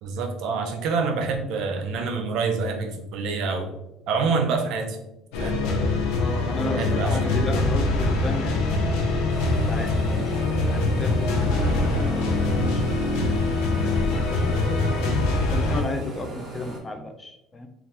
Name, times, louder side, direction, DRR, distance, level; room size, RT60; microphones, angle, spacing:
voice 1, 0.0-3.8 4.1-5.0 5.4-5.6 6.7-7.5, right 4 dB, 65° right, 5 dB, 0.5 m, -27 dB
sound 1, 5.3-15.8, left 2 dB, 85° left, 0.5 m, -23 dB
voice 2, 6.2-8.9 9.5-11.2 12.1-12.3 12.6-12.9 13.5-14.7 15.5-17.7, left 2 dB, 20° left, 5 dB, 0.3 m, -34 dB
sound 2, 9.3-16.8, right 2 dB, 40° right, 1.0 m, -37 dB
3.3 x 2.4 x 2.8 m, 0.91 s
cardioid pair, 125°, 0 cm